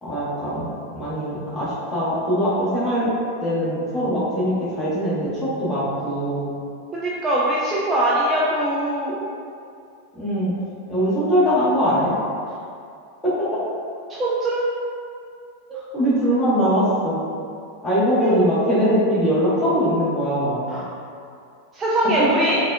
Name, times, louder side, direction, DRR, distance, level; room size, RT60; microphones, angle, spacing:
voice 1, 0.0-3.1 3.4-6.5 10.2-10.5 10.9-12.1 15.9-17.2 17.8-20.8, equal, 10° left, -11 dB, 1.3 m, -21 dB
voice 2, 6.9-9.3 14.1-14.6 18.2-18.3 20.7-20.8 21.7-22.6, right 1 dB, 20° right, -7 dB, 0.4 m, -22 dB
4.1 x 2.4 x 2.4 m, 2.4 s
figure-of-eight pair, 90°, 0 cm